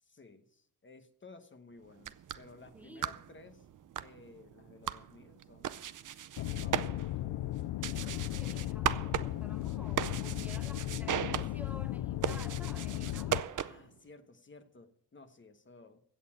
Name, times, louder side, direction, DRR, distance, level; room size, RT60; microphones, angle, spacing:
voice 1, 0.0-3.7 4.0-5.8 6.3-7.2 11.7-11.8 13.6-16.0, left 3 dB, 30° left, 1.1 m, -55 dB
sound 1, 1.9-14.0, right 10 dB, 50° right, 0.6 m, -38 dB
voice 2, 2.7-3.2 7.9-13.7, equal, 5° right, 0.7 m, -52 dB
sound 2, 6.4-13.4, left 15 dB, 90° left, 0.5 m, -36 dB
16.0 x 6.8 x 7.4 m
cardioid pair, 120°, 41 cm